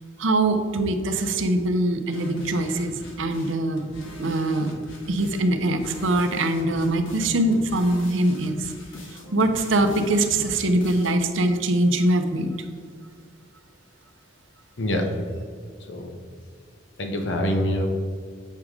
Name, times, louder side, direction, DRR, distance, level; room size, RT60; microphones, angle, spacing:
voice 1, 0.2-3.8 4.2-4.7 5.1-8.7 9.3-12.5, right 1 dB, 80° right, 7 dB, 0.6 m, -23 dB
sound 1, 2.1-11.1, left 1 dB, 90° left, 1.4 m, -41 dB
voice 2, 14.8-15.1 15.9-16.2 17.0-17.9, left 1 dB, 65° left, 4 dB, 0.9 m, -25 dB
7.4 x 4.8 x 3.7 m, 2.1 s
head